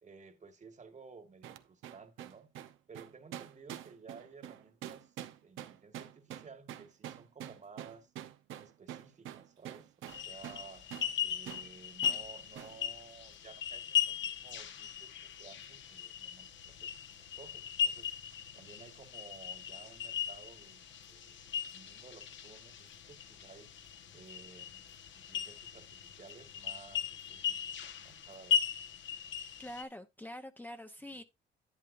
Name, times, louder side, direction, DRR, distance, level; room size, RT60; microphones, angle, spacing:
voice 1, 0.0-2.5 2.9-5.1 5.4-8.1 8.6-10.9 11.2-18.1 18.5-23.7 24.1-28.7 31.1-31.2, right 5 dB, 35° right, 1.6 m, -55 dB
sound 1, 1.4-10.7 10.9-11.1 11.5-11.7 12.0-12.2 12.6-12.8, right 11 dB, 85° right, 0.9 m, -46 dB
sound 2, 10.1-29.8, left 8 dB, 70° left, 1.3 m, -38 dB
voice 2, 29.6-31.2, left 1 dB, 10° left, 0.8 m, -45 dB
11.0 x 8.9 x 2.6 m
cardioid pair, 90°, 20 cm